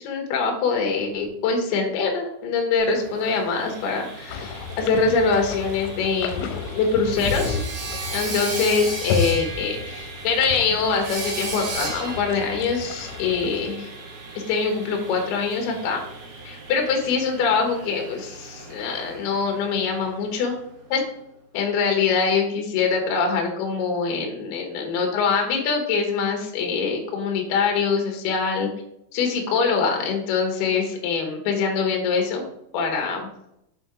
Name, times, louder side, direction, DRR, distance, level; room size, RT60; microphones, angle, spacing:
voice 1, 0.0-7.6 8.1-13.9 14.3-16.0 16.4-20.5 20.9-21.0 21.5-28.7 29.1-32.5 32.7-33.3, left 5 dB, 70° left, 2 dB, 2.7 m, -24 dB
Sawing, 2.8-20.6, right 3 dB, 90° right, 1.5 m, -36 dB
sound 1, 4.3-13.7, left 5 dB, 85° left, 3.2 m, -32 dB
7.2 x 4.4 x 4.7 m, 0.78 s
omnidirectional pair, 6.0 m